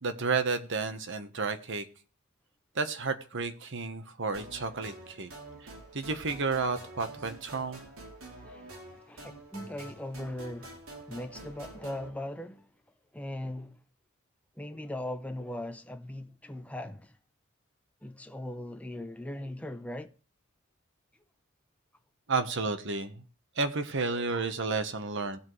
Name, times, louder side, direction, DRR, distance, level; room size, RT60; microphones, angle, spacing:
voice 1, 0.0-1.8 2.7-5.3 5.6-7.8 22.3-23.2 23.6-25.4, right 4 dB, 60° right, 1.2 m, -32 dB
sound 1, 4.3-12.1, right 2 dB, 85° right, 3.2 m, -47 dB
voice 2, 8.4-10.8 11.0-12.7 13.1-13.8 14.6-17.2 18.0-20.1, left 1 dB, 5° left, 0.8 m, -39 dB
18.5 x 7.8 x 3.2 m
head